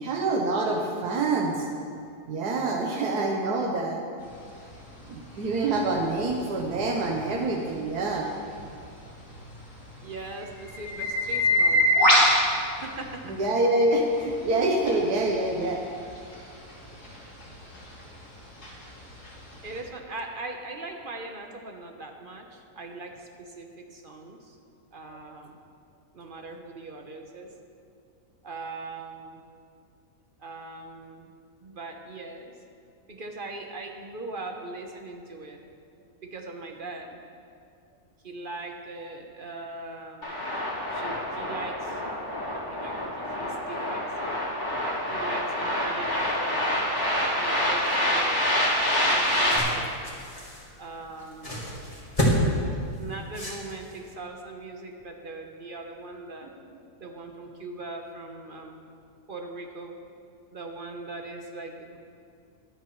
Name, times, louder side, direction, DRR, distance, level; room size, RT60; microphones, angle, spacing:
voice 1, 0.0-1.7 2.3-4.0 5.1-8.3 13.2-15.8 56.4-56.5, right 2 dB, 80° right, 0 dB, 1.5 m, -26 dB
sound 1, 4.2-13.5 13.9-19.8, left 1 dB, 80° left, 3.3 m, -28 dB
voice 2, 10.0-12.4 12.8-13.2 19.6-24.6 24.9-25.6 26.1-27.5 28.4-29.4 30.4-31.3 31.6-32.5 33.1-35.6 36.2-37.2 38.2-40.3 40.9-42.0 42.5-44.0 45.1-46.9 47.3-48.5 48.8-49.9 50.8-51.6 53.0-56.5 57.0-58.8 59.3-59.9 60.5-62.0, right 2 dB, 40° right, 3 dB, 0.9 m, -40 dB
sound 2, 40.2-49.6, left 1 dB, 45° left, 2.9 m, -27 dB
sound 3, 48.7-54.1, equal, 20° left, 1.9 m, -30 dB
22.5 x 8.7 x 3.1 m, 2.4 s
omnidirectional pair, 1.7 m